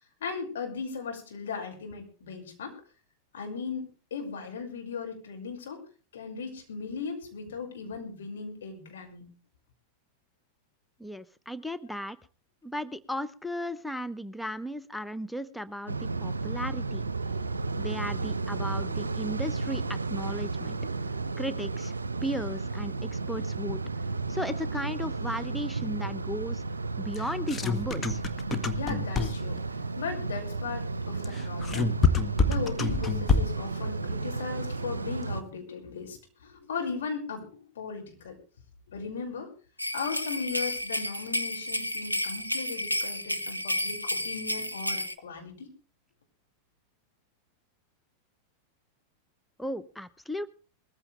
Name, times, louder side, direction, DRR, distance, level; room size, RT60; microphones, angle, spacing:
voice 1, 0.2-2.8 3.3-5.8 6.1-9.3 28.8-29.6 30.0-31.9 32.5-38.4 38.9-39.5 39.9-45.7, left 5 dB, 60° left, 3 dB, 5.7 m, -37 dB
voice 2, 11.0-12.2 12.6-17.0 17.8-20.8 21.4-23.8 24.3-26.6 27.0-28.2 49.6-50.5, equal, 5° left, 13 dB, 0.8 m, -35 dB
sound 1, 15.9-35.4, right 3 dB, 75° right, 0.8 m, -33 dB
sound 2, 27.1-29.6 31.2-33.7, left 4 dB, 20° left, 1.6 m, -27 dB
sound 3, 39.8-45.1, left 1 dB, 90° left, 1.2 m, -31 dB
21.0 x 15.0 x 3.3 m, 0.36 s
figure-of-eight pair, 90°, 0 cm